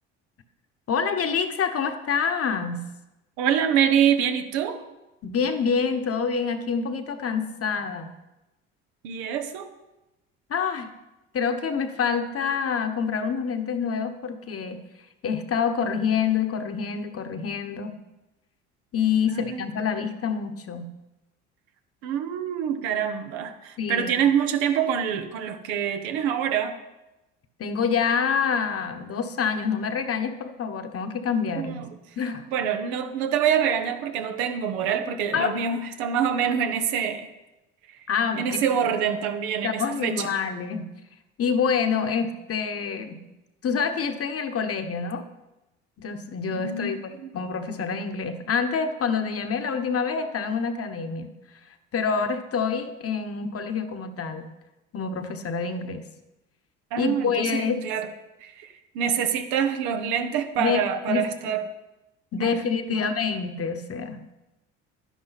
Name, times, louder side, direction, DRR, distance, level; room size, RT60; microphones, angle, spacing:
voice 1, 0.9-2.8 5.2-8.1 10.5-10.9 11.3-14.8 15.2-17.9 18.9-20.9 23.8-24.1 27.6-31.8 32.2-32.5 35.3-35.6 38.1-38.6 39.6-40.9 41.4-43.2 43.6-45.2 46.0-47.0 47.3-51.3 51.9-54.5 54.9-56.0 57.0-57.9 60.6-60.8 61.1-61.3 62.3-64.2, left 6 dB, 40° left, 7 dB, 1.2 m, -27 dB
voice 2, 3.4-4.8 9.0-9.7 19.2-19.6 22.0-26.8 31.6-32.0 32.5-37.3 37.9-38.0 38.4-40.3 46.5-47.3 56.9-58.1 58.4-61.7 62.3-62.6 62.9-63.0, right 8 dB, 75° right, 7 dB, 1.1 m, -26 dB
11.0 x 10.5 x 4.1 m, 0.99 s
hypercardioid pair, 65°, 35 cm